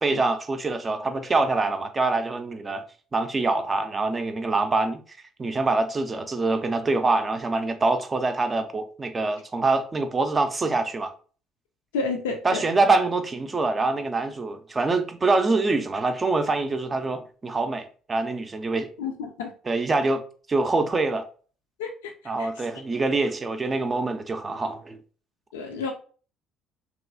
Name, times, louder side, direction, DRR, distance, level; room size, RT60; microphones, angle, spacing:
voice 1, 0.0-2.8 3.1-5.0 5.4-11.1 12.4-18.9 19.7-20.2 20.5-21.3 22.3-25.0, right 3 dB, 30° right, 0.4 m, -25 dB
voice 2, 11.9-12.6 19.0-19.5 21.8-22.1 22.4-22.5 25.5-25.9, left 4 dB, 75° left, 0.4 m, -30 dB
2.9 x 2.3 x 2.5 m
figure-of-eight pair, 50°, 0 cm